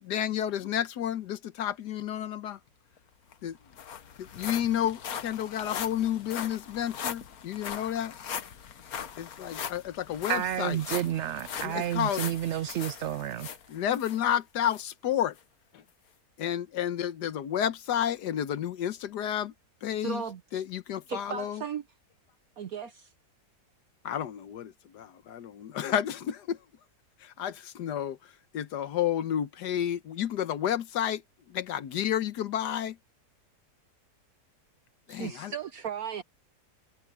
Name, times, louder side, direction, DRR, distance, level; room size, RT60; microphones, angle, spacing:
voice 1, 0.0-2.6 3.4-3.6 4.2-8.1 9.2-10.8 11.6-12.2 13.7-15.4 15.7-15.8 16.4-19.5 19.8-20.2 20.5-21.6 24.0-26.6 27.2-31.2 31.5-33.0 35.1-35.5, left 10 dB, 90° left, 1.5 m, -31 dB
sound 1, 3.0-3.1 3.3-14.2 14.7-14.8 15.4-15.5, left 8 dB, 65° left, 1.5 m, -40 dB
voice 2, 10.3-13.5, right 11 dB, 80° right, 0.6 m, -30 dB
voice 3, 20.0-20.6 21.1-21.8 22.6-23.1 35.1-36.2, right 7 dB, 65° right, 1.3 m, -36 dB
omnidirectional pair, 1.7 m